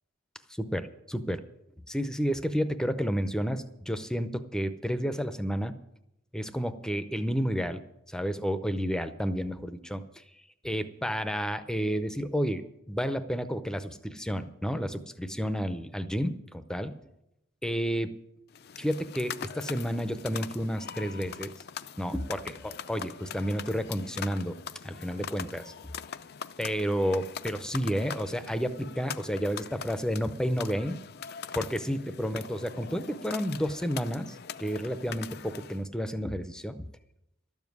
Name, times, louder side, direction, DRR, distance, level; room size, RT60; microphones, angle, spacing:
voice 1, 0.6-1.4 1.9-5.7 6.3-7.8 8.1-10.2 10.6-16.9 17.6-18.2 18.8-21.5 22.0-24.6 24.8-25.7 26.6-31.0 31.5-36.8, equal, 5° left, 11 dB, 0.6 m, -31 dB
sound 1, 18.5-35.8, left 8 dB, 50° left, 0.4 m, -42 dB
13.0 x 7.2 x 9.5 m, 0.86 s
head